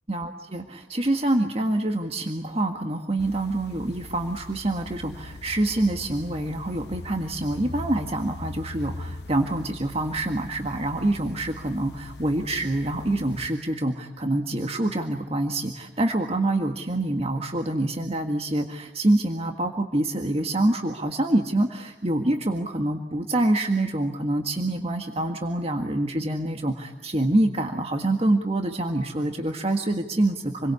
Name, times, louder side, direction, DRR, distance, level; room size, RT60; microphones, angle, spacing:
voice 1, 0.1-30.7, right 1 dB, 35° right, 4 dB, 1.7 m, -26 dB
sound 1, 3.2-13.5, left 2 dB, 70° left, 1.0 m, -41 dB
28.5 x 22.5 x 8.4 m, 1.0 s
head